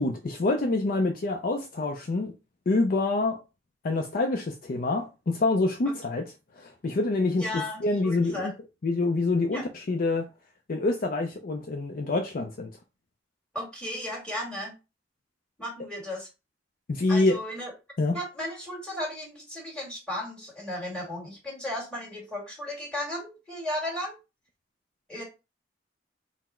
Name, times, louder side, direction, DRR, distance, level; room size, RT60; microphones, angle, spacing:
voice 1, 0.0-2.3 2.7-3.4 3.8-6.2 6.6-8.5 8.8-10.3 10.7-12.7 16.9-17.4 18.0-18.2, left 2 dB, 50° left, 0.5 m, -26 dB
voice 2, 7.4-8.5 9.5-9.6 13.5-14.7 15.6-16.3 17.1-17.7 18.1-24.2 25.1-25.2, left 1 dB, 5° left, 1.7 m, -35 dB
4.1 x 2.1 x 4.3 m
head